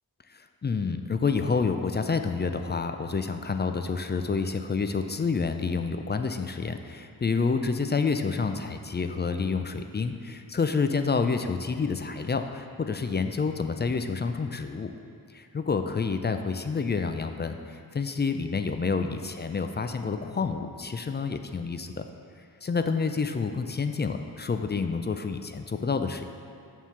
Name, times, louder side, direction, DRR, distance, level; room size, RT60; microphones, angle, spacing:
voice 1, 0.3-14.9 15.3-22.0 22.6-26.3, left 4 dB, 30° left, 7 dB, 0.4 m, -28 dB
7.0 x 3.7 x 5.9 m, 2.4 s
cardioid pair, 60°, 39 cm